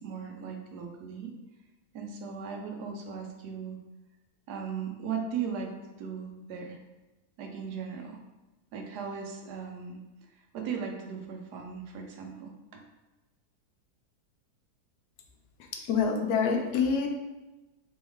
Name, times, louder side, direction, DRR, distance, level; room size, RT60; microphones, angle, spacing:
voice 1, 0.0-1.3 1.9-3.8 4.5-5.7 6.0-6.8 7.4-8.2 8.7-10.0 10.3-12.8, right 6 dB, 90° right, 3 dB, 1.2 m, -37 dB
voice 2, 15.9-17.1, left 6 dB, 80° left, 3 dB, 1.2 m, -26 dB
3.5 x 3.1 x 3.5 m, 1.1 s
omnidirectional pair, 1.7 m